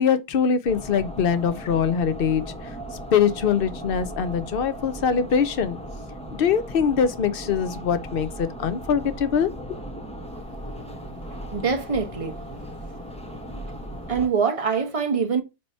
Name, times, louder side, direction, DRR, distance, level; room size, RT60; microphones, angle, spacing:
voice 1, 0.0-2.4 3.1-5.8 6.3-9.8, left 7 dB, 50° left, 0.8 m, -23 dB
sound 1, 0.6-14.3, equal, 5° left, 0.6 m, -37 dB
voice 2, 11.5-12.4 14.1-15.4, right 5 dB, 25° right, 1.1 m, -24 dB
7.6 x 2.9 x 5.4 m
omnidirectional pair, 1.5 m